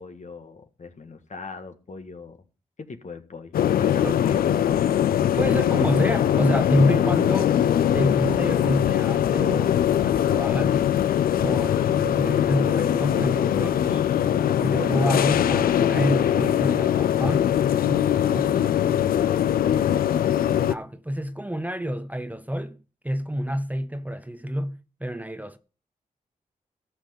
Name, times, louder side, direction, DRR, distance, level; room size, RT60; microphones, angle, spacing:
voice 1, 0.0-2.5 2.9-4.6 19.3-20.2, left 4 dB, 55° left, 1.7 m, -40 dB
sound 1, 3.5-20.7, left 10 dB, 85° left, 0.5 m, -21 dB
voice 2, 5.4-7.6 7.9-10.8 11.4-14.1 14.6-18.7 20.7-25.6, equal, 10° right, 0.9 m, -28 dB
13.5 x 5.9 x 5.3 m
supercardioid pair, 40°, 15 cm